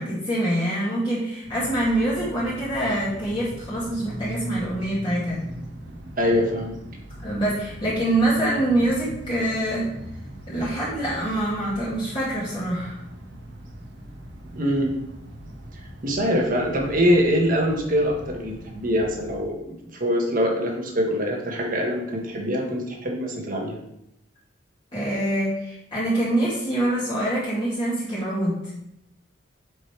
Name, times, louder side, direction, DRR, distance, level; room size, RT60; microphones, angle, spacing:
voice 1, 0.0-5.4 7.2-9.9 10.5-13.0 24.9-28.7, right 1 dB, 25° left, -10 dB, 2.5 m, -25 dB
sound 1, 1.4-19.4, right 1 dB, 70° right, 1.3 m, -40 dB
voice 2, 6.2-6.8 14.5-14.9 16.0-19.6 19.9-23.7, equal, 45° right, 0 dB, 1.5 m, -23 dB
8.0 x 5.3 x 3.3 m, 0.83 s
head